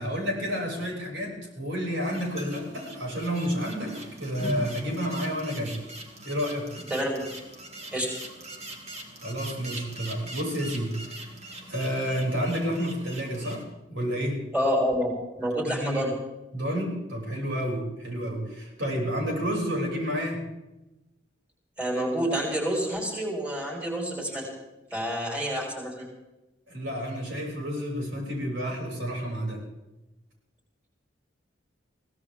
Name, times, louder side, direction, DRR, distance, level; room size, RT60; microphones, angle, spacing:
voice 1, 0.0-5.8 6.2-6.7 9.2-11.2 11.7-14.4 15.6-16.0 16.5-20.4 26.7-29.6, equal, 75° right, -1 dB, 6.6 m, -30 dB
sound 1, 2.0-13.6, right 1 dB, 35° right, 3.2 m, -41 dB
voice 2, 6.9-7.3 7.9-8.2 14.5-16.1 21.8-24.5 24.9-26.1, equal, 5° right, -2 dB, 5.1 m, -28 dB
23.0 x 17.0 x 3.6 m, 1.0 s
head